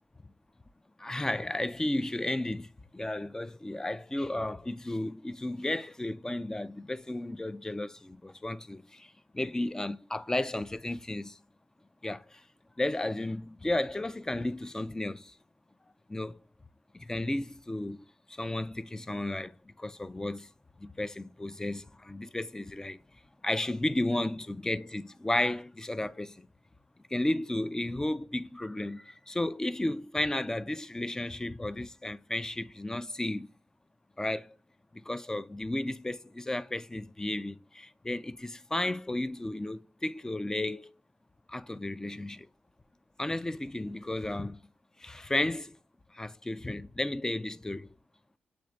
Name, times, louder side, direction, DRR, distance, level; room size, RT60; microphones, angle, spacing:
voice 1, 1.0-11.4 12.0-12.4 12.8-15.3 16.1-16.4 16.9-20.5 20.8-23.0 23.4-26.5 27.1-33.5 34.2-34.5 34.9-40.9 41.5-42.5 43.2-44.6 45.0-45.8 46.1-47.9, left 1 dB, 15° left, 0.4 m, -33 dB
7.0 x 3.1 x 2.4 m
cardioid pair, 55°, 3 cm